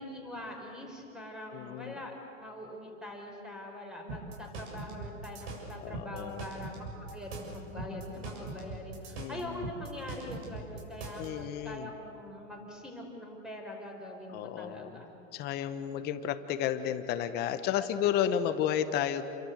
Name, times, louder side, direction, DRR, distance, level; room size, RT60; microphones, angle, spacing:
voice 1, 0.0-15.2, left 1 dB, ahead, 1 dB, 4.9 m, -43 dB
voice 2, 1.5-2.0 5.8-6.4 9.1-9.7 11.2-11.9 14.3-15.0 15.3-19.2, left 10 dB, 25° left, 10 dB, 1.2 m, -32 dB
sound 1, 4.1-11.3, right 3 dB, 45° right, 7.4 m, -41 dB
30.0 x 23.5 x 8.1 m, 2.9 s
hypercardioid pair, 150°, 40 cm